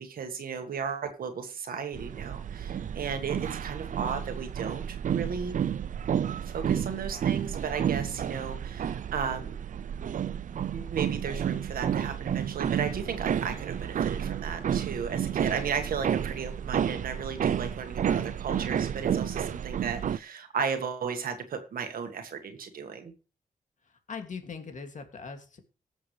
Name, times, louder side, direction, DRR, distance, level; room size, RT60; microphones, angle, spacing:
voice 1, 0.0-5.6 6.4-9.5 10.7-23.1, right 6 dB, 85° right, 6 dB, 1.6 m, -35 dB
sound 1, 1.9-20.2, right 9 dB, 60° right, 0.4 m, -31 dB
voice 2, 23.8-25.6, left 5 dB, 60° left, 5 dB, 2.4 m, -41 dB
19.5 x 7.2 x 3.3 m, 0.34 s
wide cardioid pair, 105°, 15 cm